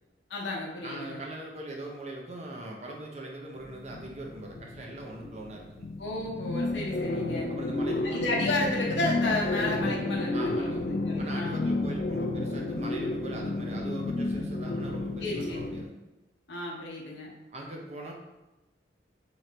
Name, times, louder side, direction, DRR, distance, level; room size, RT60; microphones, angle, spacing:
voice 1, 0.3-1.2 6.0-7.5 8.0-11.8 15.2-15.6 16.5-17.3, left 2 dB, 75° left, -3 dB, 0.8 m, -32 dB
voice 2, 0.8-5.9 7.5-8.2 10.3-10.8 11.2-15.9 17.5-18.1, right 1 dB, 35° right, 0 dB, 0.6 m, -41 dB
sound 1, 3.6-15.8, left 2 dB, 50° left, 0.4 m, -31 dB
3.2 x 3.1 x 3.8 m, 1.0 s
head